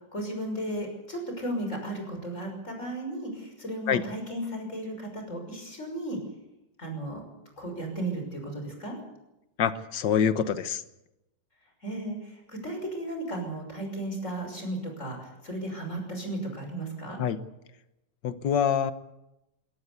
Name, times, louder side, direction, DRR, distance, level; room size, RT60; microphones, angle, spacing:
voice 1, 0.1-6.2 6.8-7.2 7.6-9.0 11.8-17.2, right 1 dB, 40° left, 3 dB, 6.4 m, -35 dB
voice 2, 9.6-10.8 17.2-17.4 18.2-18.9, left 8 dB, 70° left, 12 dB, 1.8 m, -25 dB
22.0 x 17.5 x 8.4 m, 0.92 s
omnidirectional pair, 2.1 m